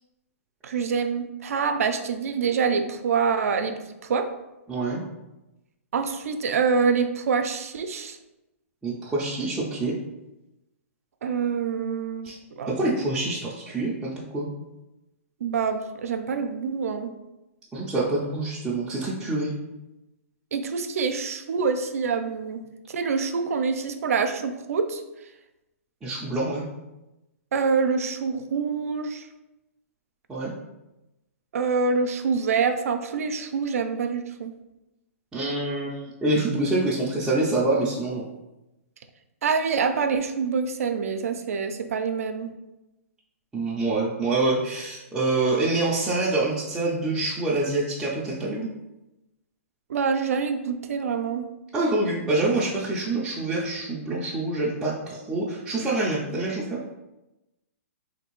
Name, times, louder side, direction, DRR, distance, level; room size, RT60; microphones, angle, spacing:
voice 1, 0.6-4.3 5.9-8.2 11.2-12.3 12.6-12.9 15.4-17.1 20.5-25.0 27.5-29.2 31.5-34.5 39.4-42.5 49.9-51.5, right 5 dB, 75° right, 8 dB, 0.4 m, -26 dB
voice 2, 4.7-5.0 8.8-10.0 12.2-12.4 12.7-14.5 17.7-19.5 26.0-26.7 30.3-30.5 35.3-38.2 43.5-48.7 51.7-56.8, right 2 dB, 5° right, -8 dB, 0.4 m, -26 dB
3.3 x 2.6 x 3.0 m, 0.97 s
hypercardioid pair, 150°, 8 cm